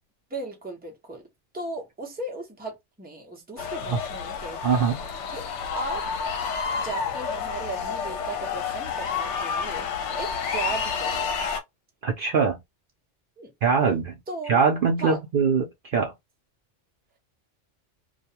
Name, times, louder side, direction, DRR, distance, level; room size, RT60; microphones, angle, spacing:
voice 1, 0.3-1.2 1.5-4.8 5.3-5.5 5.7-6.1 6.8-9.9 10.2-11.4 13.4-13.5 14.3-14.6 15.0-15.2, right 2 dB, 10° right, 0.7 m, -36 dB
sound 1, 3.6-11.6, left 6 dB, 75° left, 0.9 m, -30 dB
voice 2, 4.6-5.0 12.0-12.6 13.6-14.1 14.5-16.1, right 5 dB, 55° right, 0.6 m, -22 dB
2.4 x 2.2 x 2.8 m
omnidirectional pair, 1.2 m